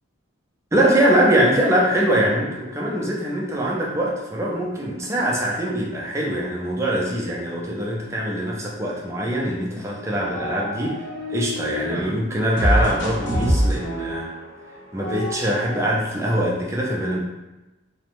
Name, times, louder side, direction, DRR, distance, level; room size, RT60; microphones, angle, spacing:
voice 1, 0.7-11.0 11.3-14.3 14.9-17.2, right 1 dB, 15° right, -3 dB, 0.4 m, -23 dB
sound 1, 9.9-12.0 12.6-16.0, equal, 60° left, 0.7 m, -26 dB
2.6 x 2.0 x 3.0 m, 1.0 s
head